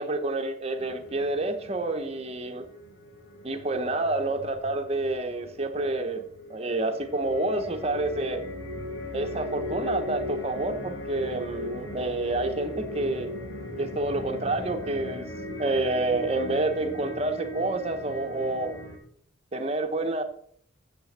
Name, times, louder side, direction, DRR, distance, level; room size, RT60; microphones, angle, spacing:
voice 1, 0.0-2.6 3.4-6.2 6.5-8.4 9.1-13.3 13.8-15.3 15.6-18.8 19.5-20.2, right 2 dB, 30° right, 6 dB, 1.1 m, -28 dB
sound 1, 0.8-19.0, left 1 dB, 85° left, 2.4 m, -38 dB
14.5 x 6.9 x 4.3 m, 0.64 s
head